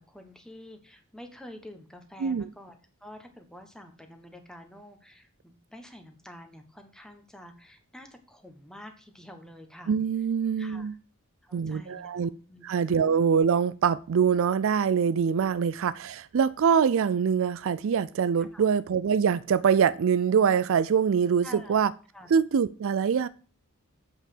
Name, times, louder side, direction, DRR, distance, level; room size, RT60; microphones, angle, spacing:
voice 1, 0.0-2.7 3.0-10.0 10.6-11.0 11.4-12.2 12.5-13.0 18.4-18.6 21.4-21.8 22.1-22.3, left 1 dB, 5° left, 1.3 m, -48 dB
voice 2, 9.9-10.9 11.5-12.3 12.6-21.9 22.3-23.3, right 7 dB, 60° right, 0.4 m, -24 dB
8.3 x 5.6 x 6.6 m
head